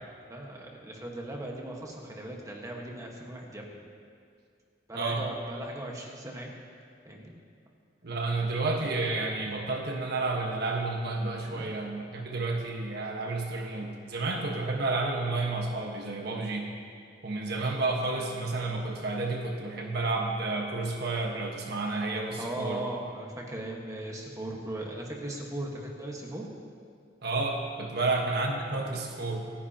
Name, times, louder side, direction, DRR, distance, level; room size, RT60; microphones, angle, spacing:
voice 1, 0.2-3.8 4.9-6.5 7.0-7.3 11.5-11.6 22.4-26.5 28.0-28.3, right 1 dB, 20° right, -1 dB, 1.4 m, -38 dB
voice 2, 4.9-5.2 8.0-16.7 17.2-22.8 27.2-29.5, right 3 dB, 60° right, 1 dB, 1.3 m, -31 dB
27.0 x 10.0 x 2.9 m, 2.2 s
head